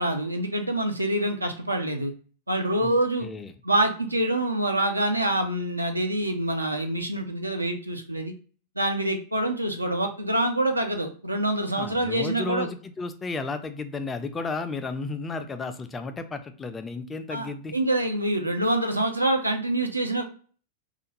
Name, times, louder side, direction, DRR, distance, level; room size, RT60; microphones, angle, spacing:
voice 1, 0.0-2.1 2.5-3.3 3.6-8.3 8.8-12.7 17.3-20.2, right 1 dB, 85° right, 4 dB, 0.3 m, -26 dB
voice 2, 3.2-3.5 11.8-17.8, left 3 dB, 15° left, 8 dB, 0.3 m, -33 dB
2.4 x 2.1 x 2.9 m, 0.41 s
figure-of-eight pair, 90°, 0 cm